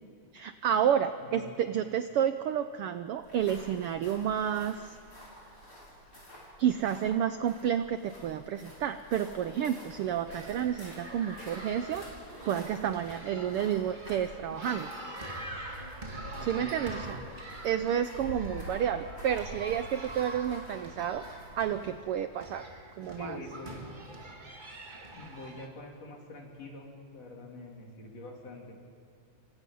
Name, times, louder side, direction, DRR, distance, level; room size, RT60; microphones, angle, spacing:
voice 1, 0.3-5.0 6.6-12.0 12.5-14.9 16.4-17.2 17.6-21.2 21.6-22.7 23.0-23.4, right 9 dB, 90° right, 10 dB, 1.2 m, -30 dB
voice 2, 1.2-1.6 16.4-17.0 23.1-23.9 25.1-28.8, left 2 dB, 55° left, -1 dB, 4.5 m, -45 dB
sound 1, 3.2-22.0, equal, 25° left, 7.1 m, -49 dB
sound 2, 10.3-25.7, right 1 dB, 20° right, 1.6 m, -44 dB
29.0 x 25.0 x 5.5 m, 2.5 s
omnidirectional pair, 3.4 m